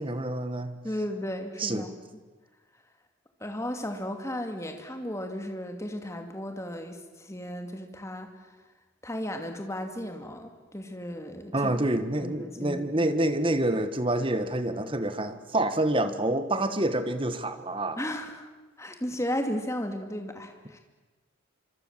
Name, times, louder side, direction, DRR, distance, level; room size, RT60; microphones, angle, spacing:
voice 1, 0.0-0.7 1.6-1.9 11.5-18.0, right 1 dB, 25° right, 10 dB, 1.4 m, -27 dB
voice 2, 0.8-1.9 3.4-8.3 9.0-11.7 12.2-13.1 18.0-18.5 18.8-20.8, left 1 dB, 15° left, 5 dB, 2.5 m, -35 dB
25.5 x 25.0 x 7.5 m, 1.2 s
head